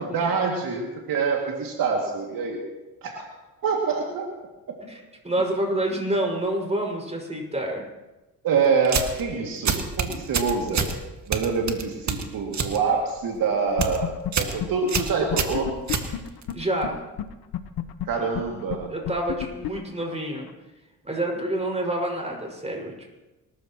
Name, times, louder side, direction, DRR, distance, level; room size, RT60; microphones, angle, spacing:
voice 1, 0.0-2.6 3.0-3.2 3.6-4.3 4.7-4.8 8.4-10.9 11.3-15.7 18.1-18.9, right 5 dB, 70° right, 0 dB, 2.4 m, -26 dB
voice 2, 4.9-7.8 16.5-17.0 18.2-18.3 18.9-20.5 21.0-22.9, right 1 dB, 20° right, 0 dB, 5.8 m, -28 dB
sound 1, 8.8-9.2 9.7-11.0 11.3-12.8 13.1-13.4 13.7-14.0 14.3-14.6 14.9-16.5, right 5 dB, 50° right, 1.9 m, -26 dB
sound 2, 13.8-14.3 14.6-14.7 15.0-15.1 15.3-16.9 17.2-17.3 17.5-20.5, left 12 dB, 80° left, 1.1 m, -29 dB
25.5 x 14.0 x 3.0 m, 1.1 s
supercardioid pair, 65°, 35 cm